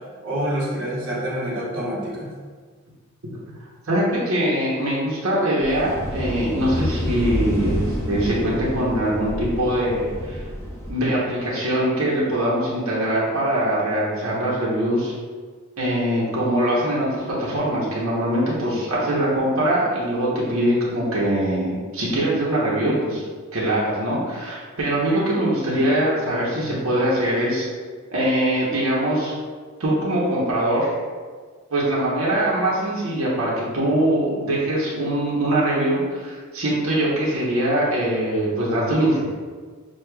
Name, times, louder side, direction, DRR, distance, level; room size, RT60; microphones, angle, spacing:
voice 1, 0.2-2.3, equal, 60° right, -5 dB, 1.0 m, -27 dB
voice 2, 3.9-10.4 10.9-15.1 15.8-23.2 23.5-27.7 28.1-29.3 29.8-30.9 31.7-39.2, right 1 dB, 85° right, -6 dB, 0.9 m, -22 dB
sound 1, 5.6-10.9, left 1 dB, 15° left, 0.6 m, -28 dB
6.2 x 2.3 x 2.3 m, 1.5 s
head